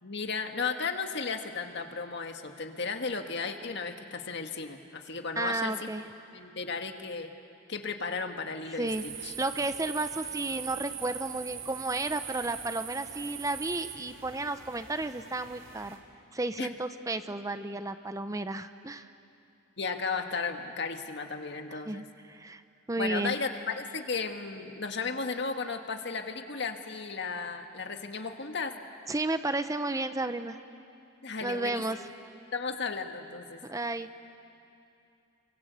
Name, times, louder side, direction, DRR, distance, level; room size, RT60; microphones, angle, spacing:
voice 1, 0.0-5.9 6.3-7.3 7.7-9.3 16.6-16.7 19.8-22.0 23.0-28.7 31.2-31.8 32.5-33.6, left 4 dB, 65° left, 5 dB, 1.8 m, -34 dB
voice 2, 5.4-6.0 8.8-9.0 9.4-16.0 16.3-19.1 21.7-22.6 22.9-23.4 29.1-30.6 31.4-32.0 33.6-34.1, right 2 dB, 15° right, 10 dB, 0.7 m, -32 dB
sound 1, 8.9-16.0, right 8 dB, 80° right, 3.3 m, -41 dB
30.0 x 24.0 x 8.3 m, 2.6 s
head